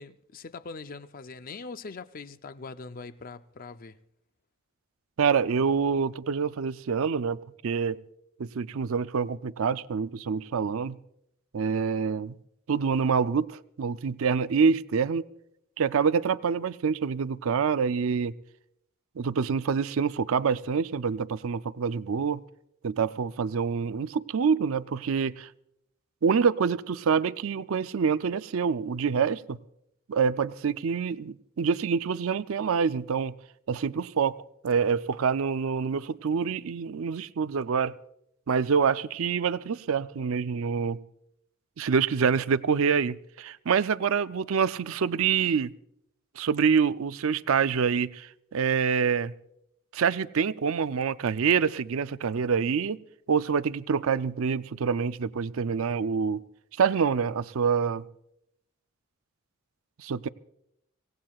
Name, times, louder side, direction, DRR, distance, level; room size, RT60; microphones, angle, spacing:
voice 1, 0.0-4.0, left 4 dB, 40° left, 0.5 m, -42 dB
voice 2, 5.2-8.0 8.4-11.0 11.5-12.3 12.7-15.2 15.8-18.3 19.2-22.4 22.8-25.5 26.2-29.6 30.1-33.3 33.7-34.4 34.6-37.9 38.5-41.0 41.8-45.7 46.4-49.3 49.9-53.0 53.3-56.4 56.8-58.0 60.0-60.3, right 6 dB, 70° right, 0.4 m, -26 dB
25.0 x 17.5 x 2.4 m
head